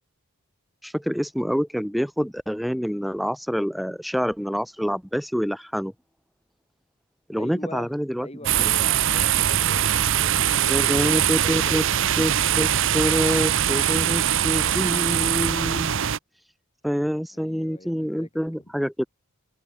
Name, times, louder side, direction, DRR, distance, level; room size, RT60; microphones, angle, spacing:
voice 1, 0.8-5.9 7.3-8.3 8.6-8.7 10.7-11.8 12.2-15.9 16.8-19.1, equal, ahead, 0.5 m, -26 dB
voice 2, 7.3-7.9 8.2-11.8 17.3-18.3, left 1 dB, 30° left, 5.4 m, -42 dB
sound 1, 8.4-16.2, right 10 dB, 60° right, 0.7 m, -22 dB
head